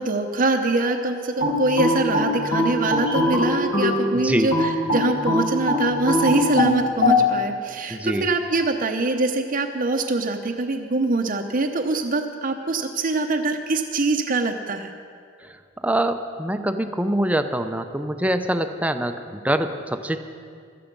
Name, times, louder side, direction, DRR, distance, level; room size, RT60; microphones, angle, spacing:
voice 1, 0.0-14.9, right 2 dB, 45° right, 3 dB, 0.8 m, -24 dB
sound 1, 1.4-4.0 4.5-7.2, left 2 dB, 70° left, 4.3 m, -21 dB
voice 2, 4.1-4.5 7.9-8.3 15.4-15.6 15.8-20.2, right 1 dB, 5° right, 7 dB, 0.7 m, -24 dB
16.0 x 13.0 x 5.3 m, 2.2 s
head